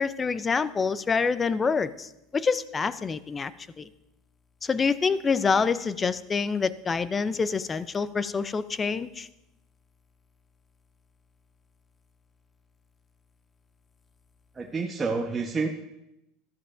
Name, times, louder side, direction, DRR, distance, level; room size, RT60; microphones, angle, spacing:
voice 1, 0.0-3.5 3.8-3.9 4.6-9.3, left 5 dB, 25° left, 15 dB, 0.6 m, -26 dB
voice 2, 14.5-15.7, right 4 dB, 25° right, 1 dB, 1.0 m, -28 dB
14.0 x 12.0 x 2.6 m, 0.87 s
supercardioid pair, 95°, 0 cm